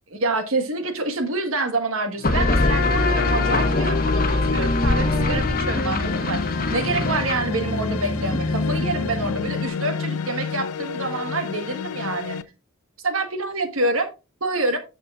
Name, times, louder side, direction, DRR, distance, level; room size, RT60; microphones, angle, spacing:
voice 1, 0.1-6.4 6.7-12.4 13.0-14.1 14.4-14.8, right 2 dB, 70° right, 1.4 m, -27 dB
sound 1, 2.2-12.4, left 6 dB, 80° left, 0.5 m, -30 dB
sound 2, 2.2-9.6, left 2 dB, 40° left, 1.2 m, -23 dB
9.8 x 6.7 x 2.4 m
head